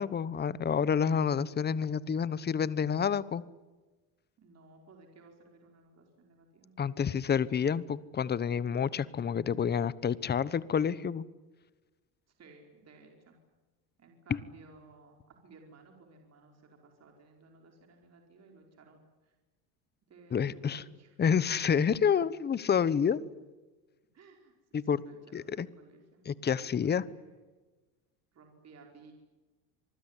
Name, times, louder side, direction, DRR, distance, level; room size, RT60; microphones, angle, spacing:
voice 1, 0.0-3.4 6.8-11.2 14.3-14.4 20.3-20.8 21.2-23.2 24.7-25.0 25.3-25.7 26.2-27.0, left 7 dB, 20° left, 18 dB, 1.0 m, -28 dB
voice 2, 4.4-6.7 12.4-13.3 14.0-19.3 20.1-21.1 23.1-23.2 24.1-26.2 27.1-27.4 28.3-29.1, right 3 dB, 35° right, 2 dB, 5.0 m, -57 dB
26.5 x 20.0 x 9.9 m, 1.2 s
cardioid pair, 130°, 46 cm